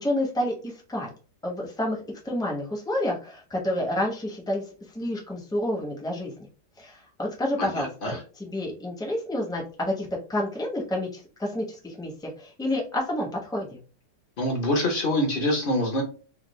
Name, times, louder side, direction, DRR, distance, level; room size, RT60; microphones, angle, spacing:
voice 1, 0.0-1.1 1.4-2.0 2.2-4.6 4.9-6.3 6.8-13.8, left 1 dB, 5° left, -2 dB, 0.6 m, -29 dB
voice 2, 7.6-8.2 14.4-16.0, left 1 dB, 45° left, 2 dB, 0.7 m, -25 dB
3.4 x 2.3 x 3.1 m, 0.37 s
omnidirectional pair, 1.8 m